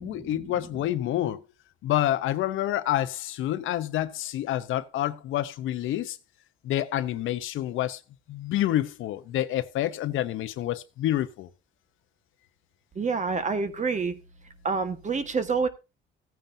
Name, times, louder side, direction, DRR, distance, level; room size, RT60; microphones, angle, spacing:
voice 1, 0.0-1.4 1.8-6.2 6.6-8.0 8.3-11.5, left 13 dB, 85° left, 0.8 m, -28 dB
voice 2, 12.9-14.2 14.6-15.7, right 4 dB, 35° right, 1.5 m, -27 dB
16.0 x 9.2 x 2.7 m
cardioid pair, 90°, 20 cm